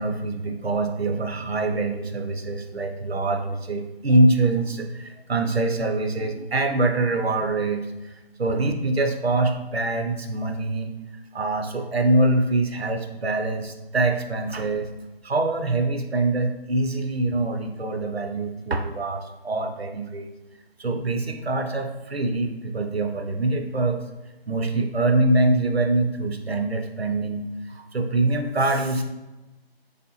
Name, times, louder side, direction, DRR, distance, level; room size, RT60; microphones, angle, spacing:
voice 1, 0.0-8.1 8.4-10.9 11.3-14.9 15.2-20.3 20.8-24.0 24.5-29.0, right 2 dB, 75° right, 5 dB, 0.6 m, -24 dB
4.1 x 3.2 x 2.8 m, 1.0 s
figure-of-eight pair, 175°, 31 cm